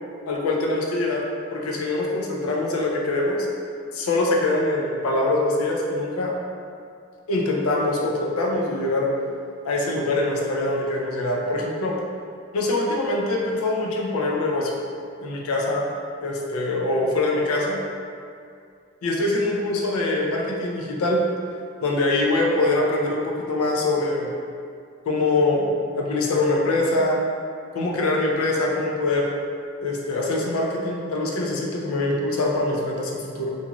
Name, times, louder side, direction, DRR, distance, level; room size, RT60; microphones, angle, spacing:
voice 1, 0.3-1.2 1.5-3.5 3.9-6.4 7.3-9.1 9.6-12.0 12.5-14.8 15.2-15.9 16.2-17.8 19.0-21.2 21.8-24.3 25.1-27.3 27.7-29.3 29.8-33.6, left 2 dB, 90° left, -1 dB, 0.4 m, -23 dB
2.6 x 2.3 x 2.9 m, 2.4 s
head